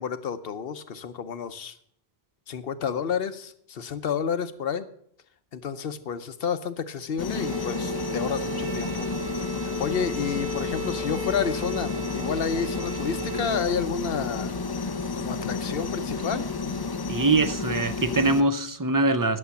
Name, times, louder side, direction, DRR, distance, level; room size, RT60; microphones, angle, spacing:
voice 1, 0.0-1.8 2.5-4.9 5.5-9.1 9.6-14.6 14.8-14.9 15.1-16.8, left 6 dB, 65° left, 1.0 m, -30 dB
sound 1, 7.2-18.4, left 4 dB, 35° left, 0.4 m, -31 dB
Bowed string instrument, 7.3-13.7, right 2 dB, 70° right, 1.2 m, -36 dB
voice 2, 17.1-19.4, right 2 dB, 25° right, 0.4 m, -23 dB
11.0 x 7.2 x 6.9 m
omnidirectional pair, 1.1 m